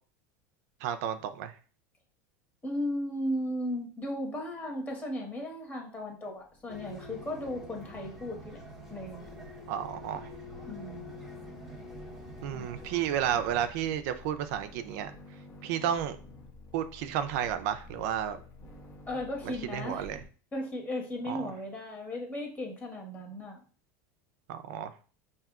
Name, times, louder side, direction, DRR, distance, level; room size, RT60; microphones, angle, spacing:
voice 1, 0.8-1.5 9.7-10.3 12.4-15.1 15.6-16.2 16.7-18.4 19.7-20.2 21.3-21.5 24.5-24.9, right 10 dB, 65° right, 10 dB, 0.4 m, -32 dB
voice 2, 2.6-8.6 8.9-9.3 10.7-11.2 12.5-12.6 19.1-20.0 20.5-23.6, left 1 dB, 15° left, 0 dB, 1.2 m, -36 dB
sound 1, 6.4-20.3, left 1 dB, 35° left, 0.9 m, -52 dB
sound 2, 6.7-13.7, left 1 dB, ahead, 0.8 m, -46 dB
5.5 x 2.7 x 2.3 m, 0.39 s
supercardioid pair, 140°, 9 cm